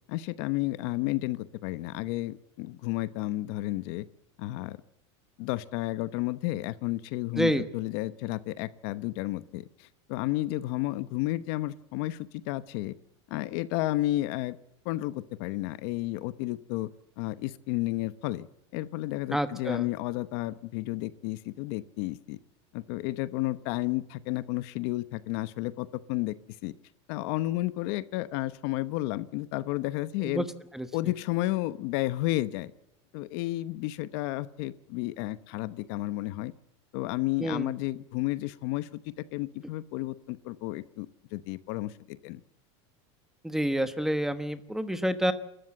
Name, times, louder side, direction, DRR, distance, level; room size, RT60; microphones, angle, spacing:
voice 1, 0.1-4.1 4.4-4.8 5.4-12.9 13.3-14.6 14.8-16.9 17.2-18.5 18.7-22.4 22.7-26.4 26.6-26.7 27.1-30.5 30.9-32.7 33.1-36.5 36.9-42.4, left 17 dB, 60° left, 15 dB, 1.0 m, -32 dB
voice 2, 7.3-7.7 19.3-19.9 30.2-30.4 30.7-30.9 37.4-37.7 43.4-45.3, equal, 5° right, 11 dB, 1.1 m, -28 dB
28.5 x 13.5 x 7.5 m, 0.83 s
supercardioid pair, 140°, 15 cm